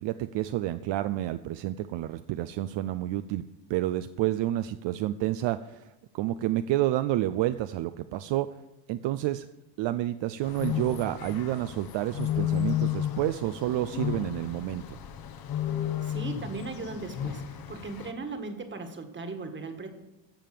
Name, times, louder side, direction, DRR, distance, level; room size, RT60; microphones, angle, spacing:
voice 1, 0.0-8.5 8.9-9.5 9.8-15.0, right 14 dB, 60° right, 11 dB, 0.6 m, -29 dB
sound 1, 10.4-18.1, left 11 dB, 45° left, 1.1 m, -33 dB
voice 2, 16.0-19.9, right 3 dB, 25° right, 6 dB, 1.6 m, -38 dB
14.5 x 5.2 x 7.6 m, 0.96 s
cardioid pair, 135°, 49 cm